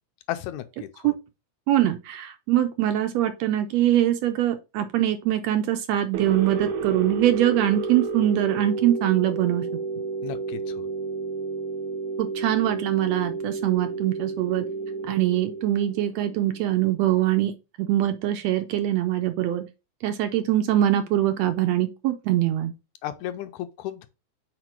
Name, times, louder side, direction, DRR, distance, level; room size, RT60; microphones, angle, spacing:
voice 1, 0.3-1.1 10.2-10.8 23.0-24.1, left 12 dB, 80° left, 1.9 m, -34 dB
voice 2, 1.7-9.6 12.2-14.6 15.0-17.5 17.8-19.6 20.0-22.7, right 13 dB, 75° right, 1.7 m, -23 dB
sound 1, 6.1-17.0, right 4 dB, 60° right, 1.5 m, -31 dB
5.0 x 4.4 x 4.5 m
omnidirectional pair, 3.4 m